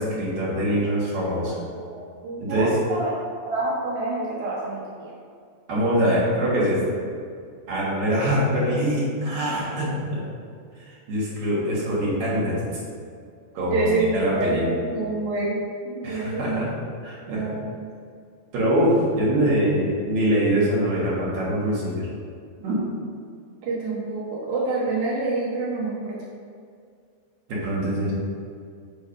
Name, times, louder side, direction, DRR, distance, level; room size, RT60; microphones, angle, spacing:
voice 1, 0.0-1.6 2.4-2.7 5.7-6.8 7.7-10.2 11.1-12.6 13.5-13.9 14.1-14.7 16.0-16.7 17.0-17.5 18.5-22.1 22.6-22.8 27.5-28.1, equal, 55° right, -7 dB, 2.3 m, -23 dB
voice 2, 1.4-3.2 3.4-5.1 9.4-9.5 13.6-15.6 15.8-16.6 17.2-17.8 23.6-26.2, right 2 dB, 80° right, -7 dB, 1.3 m, -27 dB
6.5 x 3.5 x 5.7 m, 2.2 s
omnidirectional pair, 4.9 m